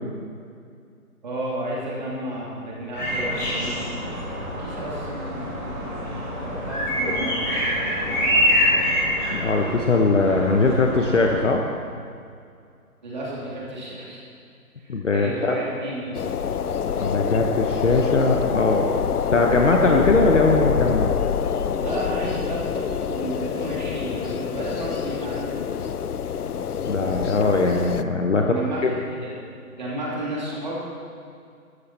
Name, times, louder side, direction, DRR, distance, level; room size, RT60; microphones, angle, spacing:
voice 1, 1.2-4.2 4.6-6.1 6.4-8.1 13.0-14.2 15.1-16.2 21.8-25.5 28.4-28.8 29.2-29.3 29.8-30.7, right 1 dB, 30° right, -6 dB, 2.9 m, -32 dB
sound 1, 2.9-11.3, equal, 15° left, 3.0 m, -25 dB
voice 2, 9.0-11.6 14.9-15.6 17.0-18.9 19.3-21.1 26.8-28.9, left 3 dB, 55° left, 2 dB, 1.1 m, -21 dB
sound 2, 16.1-28.0, left 7 dB, 80° left, 0.7 m, -26 dB
13.5 x 12.5 x 4.4 m, 2.3 s
hypercardioid pair, 175°, 45 cm